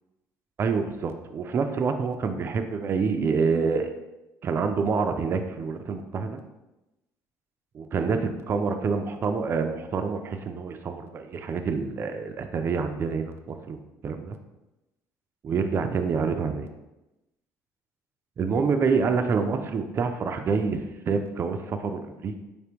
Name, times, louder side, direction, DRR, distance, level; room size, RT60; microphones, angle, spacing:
voice 1, 0.6-3.9 4.4-6.4 7.7-13.8 14.0-14.4 15.4-16.7 18.4-20.8 21.1-22.3, right 5 dB, 35° right, 6 dB, 0.4 m, -27 dB
4.3 x 3.4 x 2.9 m, 0.98 s
cardioid pair, 110°, 7 cm